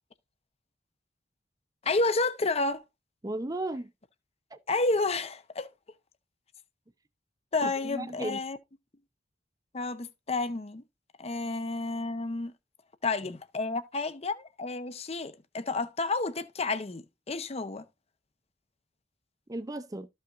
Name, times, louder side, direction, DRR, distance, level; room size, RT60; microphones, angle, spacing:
voice 1, 1.8-2.8 4.7-5.7 7.5-8.6 9.7-10.8 11.2-12.5 13.0-17.8, left 3 dB, 35° left, 0.8 m, -30 dB
voice 2, 3.2-3.9 4.5-4.6 7.6-8.4 19.5-20.1, right 1 dB, 20° right, 0.6 m, -35 dB
13.5 x 5.6 x 2.5 m
head